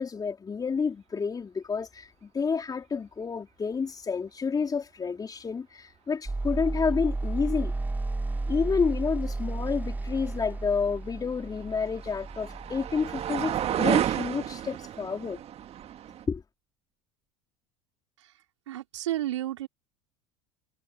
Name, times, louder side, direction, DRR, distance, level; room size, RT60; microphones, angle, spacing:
voice 1, 0.0-7.7 8.5-15.4 16.3-16.4, left 5 dB, 25° left, 3.7 m, -30 dB
sound 1, 6.3-14.4, right 2 dB, 10° right, 1.4 m, -33 dB
sound 2, 11.0-16.3, right 11 dB, 40° right, 2.0 m, -31 dB
voice 2, 18.7-19.7, right 13 dB, 80° right, 3.3 m, -31 dB
hypercardioid pair, 75°, 15 cm